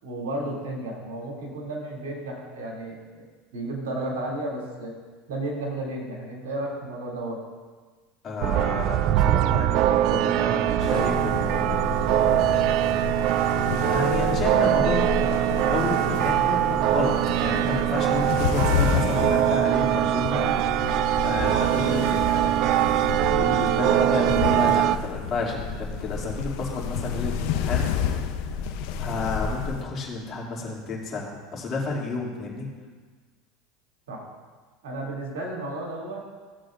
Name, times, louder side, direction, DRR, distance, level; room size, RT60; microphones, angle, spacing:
voice 1, 0.0-3.3 3.5-5.0 5.3-7.4 34.1-34.3 34.8-36.2, right 1 dB, 85° right, -2 dB, 2.7 m, -33 dB
voice 2, 8.2-11.8 13.8-20.5 21.2-22.5 23.3-27.9 29.0-32.7, left 3 dB, 40° left, -3 dB, 2.6 m, -31 dB
sound 1, 8.4-25.0, right 13 dB, 55° right, 0.3 m, -22 dB
sound 2, 10.8-29.8, left 6 dB, 65° left, 0.7 m, -30 dB
15.5 x 7.8 x 2.6 m, 1.4 s
supercardioid pair, 105°, 0 cm